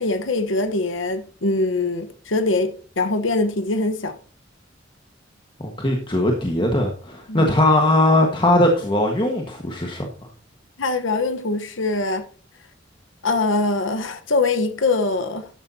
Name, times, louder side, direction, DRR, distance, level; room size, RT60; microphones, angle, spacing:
voice 1, 0.0-4.2 7.3-7.5 10.8-12.2 13.2-15.5, left 3 dB, 85° left, 1.1 m, -23 dB
voice 2, 5.6-10.1, left 1 dB, 25° left, 1.5 m, -19 dB
13.0 x 10.5 x 2.8 m
head